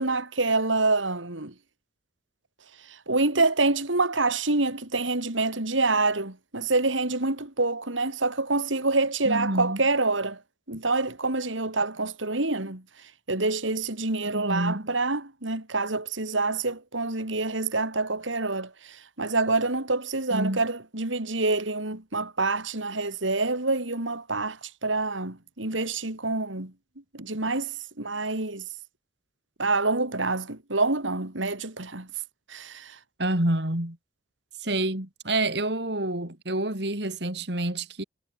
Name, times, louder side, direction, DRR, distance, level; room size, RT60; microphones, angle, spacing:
voice 1, 0.0-1.5 3.1-10.4 10.7-12.8 13.3-26.7 27.1-28.6 29.6-32.1 32.5-33.0, right 3 dB, 85° right, 3.6 m, -27 dB
voice 2, 9.3-9.8 14.2-14.9 20.3-20.6 33.2-34.0 34.6-38.0, right 1 dB, 60° right, 3.7 m, -28 dB
head